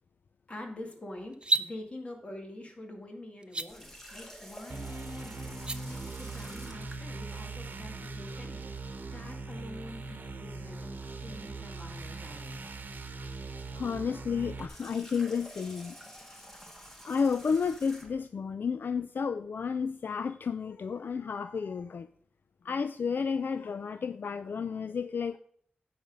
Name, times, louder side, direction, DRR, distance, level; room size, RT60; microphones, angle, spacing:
voice 1, 0.5-12.8, left 1 dB, 35° left, 3 dB, 1.9 m, -46 dB
sound 1, 1.3-1.7 3.4-3.7 5.5-5.8, right 2 dB, 30° right, 0.5 m, -28 dB
Water tap faucet, 3.7-7.1 14.5-18.3, equal, 10° left, 1.5 m, -49 dB
sound 2, 4.7-14.7, right 3 dB, 65° right, 1.0 m, -41 dB
voice 2, 13.8-15.9 16.3-16.4 17.1-22.1 22.6-25.4, left 6 dB, 70° left, 12 dB, 0.3 m, -32 dB
9.3 x 6.0 x 5.2 m, 0.63 s
wide cardioid pair, 110°, 3 cm